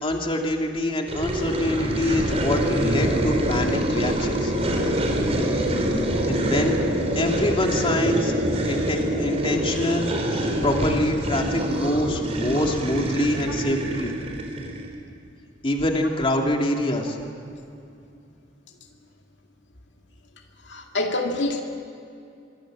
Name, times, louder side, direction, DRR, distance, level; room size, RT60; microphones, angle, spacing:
voice 1, 0.0-4.5 6.3-6.8 7.1-8.3 8.7-14.1 15.6-17.2, left 1 dB, 30° left, 2 dB, 2.7 m, -25 dB
sound 1, 1.1-14.9, right 1 dB, 35° right, 4.0 m, -25 dB
voice 2, 20.7-21.6, left 2 dB, 70° left, 2 dB, 2.2 m, -26 dB
25.0 x 25.0 x 7.8 m, 2.5 s
head